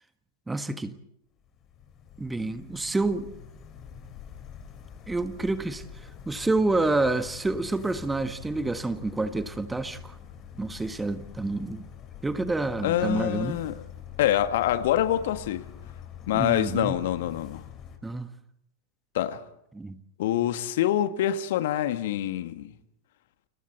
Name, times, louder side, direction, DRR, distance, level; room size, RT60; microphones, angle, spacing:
voice 1, 0.5-1.0 2.2-3.3 5.1-5.8 6.2-10.2 10.6-11.8 12.2-13.6 16.3-17.0 18.0-18.3 19.7-20.0, right 2 dB, 10° right, 1.6 m, -28 dB
sound 1, 1.4-18.0, left 8 dB, 30° left, 4.7 m, -45 dB
voice 2, 12.8-13.8 14.2-15.7 16.3-17.6 19.1-19.4 20.2-22.7, left 12 dB, 55° left, 1.6 m, -25 dB
30.0 x 29.5 x 4.3 m
figure-of-eight pair, 90°, 0 cm